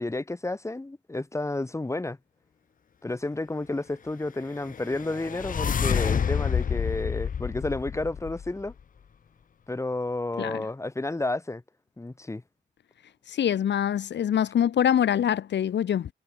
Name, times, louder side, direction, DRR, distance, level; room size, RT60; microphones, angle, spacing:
voice 1, 0.0-2.2 3.0-8.7 9.7-11.6 12.0-12.4, left 2 dB, 15° left, 5.7 m, -31 dB
sound 1, 4.6-8.7, left 7 dB, 45° left, 1.4 m, -28 dB
voice 2, 13.3-16.1, left 9 dB, 60° left, 4.3 m, -24 dB
cardioid pair, 90°, 20 cm